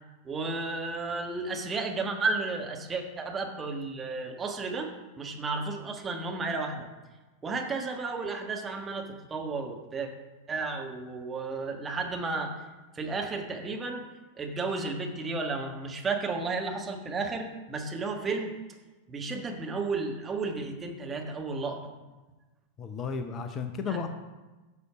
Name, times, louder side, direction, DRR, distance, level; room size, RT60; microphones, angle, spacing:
voice 1, 0.2-6.9 7.4-10.1 10.5-12.5 12.9-14.0 14.4-18.5 19.1-21.9 23.9-24.0, right 3 dB, 20° right, 2 dB, 1.5 m, -33 dB
voice 2, 22.8-24.1, left 5 dB, 30° left, 7 dB, 0.8 m, -33 dB
9.6 x 6.8 x 5.0 m, 1.2 s
figure-of-eight pair, 90°, 0 cm